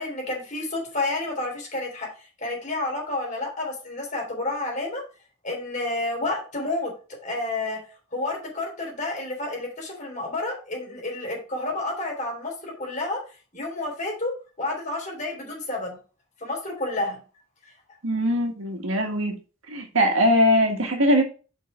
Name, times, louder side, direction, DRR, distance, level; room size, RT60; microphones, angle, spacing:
voice 1, 0.0-2.1 2.4-5.0 5.4-6.9 7.2-7.8 8.1-13.2 13.5-14.3 14.6-16.0 16.4-17.2 17.6-17.7, left 2 dB, 35° left, 3.6 m, -30 dB
voice 2, 18.0-19.3 19.7-21.2, equal, 75° right, 1.9 m, -21 dB
5.6 x 5.4 x 5.7 m
head